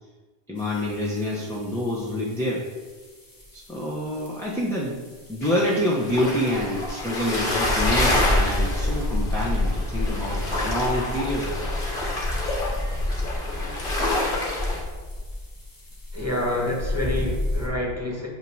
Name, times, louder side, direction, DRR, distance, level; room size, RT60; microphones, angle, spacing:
voice 1, 0.5-2.7 3.5-5.0 5.3-11.7, left 1 dB, 5° left, -6 dB, 1.0 m, -27 dB
sound 1, 0.6-17.7, left 1 dB, 20° left, 1.4 m, -30 dB
sound 2, 5.4-14.8, left 2 dB, 60° left, 1.7 m, -28 dB
voice 2, 16.1-18.3, left 1 dB, 15° right, -3 dB, 1.6 m, -27 dB
8.8 x 3.0 x 6.3 m, 1.5 s
omnidirectional pair, 1.0 m